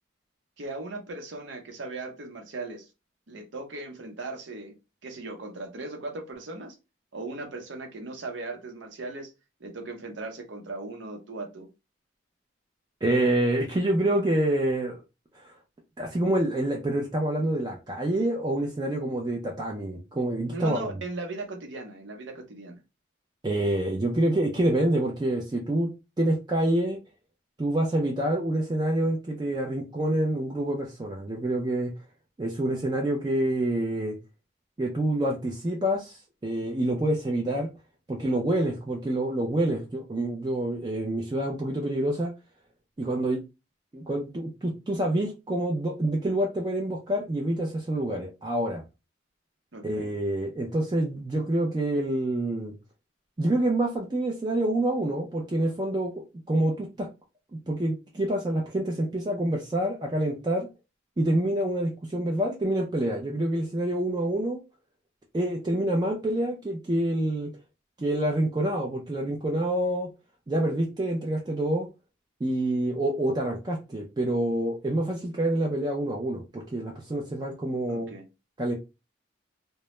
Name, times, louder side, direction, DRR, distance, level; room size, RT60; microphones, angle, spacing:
voice 1, 0.6-2.9 3.3-4.7 5.0-6.8 7.1-9.3 9.6-11.7 20.5-22.8 49.7-50.2 77.9-78.3, right 2 dB, 80° right, 3 dB, 0.7 m, -38 dB
voice 2, 13.0-15.0 15.3-15.5 16.0-20.9 23.4-25.9 26.2-27.0 27.6-31.9 32.4-34.2 34.8-37.7 38.1-42.3 43.0-43.4 43.9-48.8 49.8-52.7 53.4-56.2 56.5-57.1 57.7-60.7 61.2-64.6 65.3-67.5 68.0-70.1 70.5-71.9 72.4-78.1 78.6-78.7, right 1 dB, 20° right, 0 dB, 0.3 m, -27 dB
2.2 x 2.0 x 2.9 m, 0.26 s
head